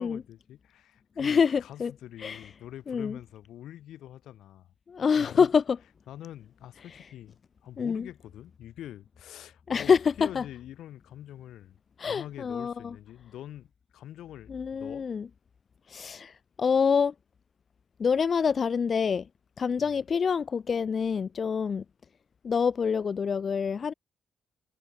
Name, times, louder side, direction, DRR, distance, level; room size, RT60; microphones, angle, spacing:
voice 1, 0.0-4.7 5.2-5.5 6.1-11.8 12.0-13.7 13.9-15.1 19.8-20.0, left 12 dB, 80° left, 2.8 m, -45 dB
voice 2, 1.2-1.9 2.2-2.5 2.9-3.2 4.9-5.8 6.9-7.0 7.8-8.1 9.7-10.4 12.0-13.0 14.5-15.3 15.9-17.1 18.0-19.3 19.6-21.8 22.4-23.9, left 6 dB, 45° left, 0.5 m, -26 dB
cardioid pair, 90°, 0 cm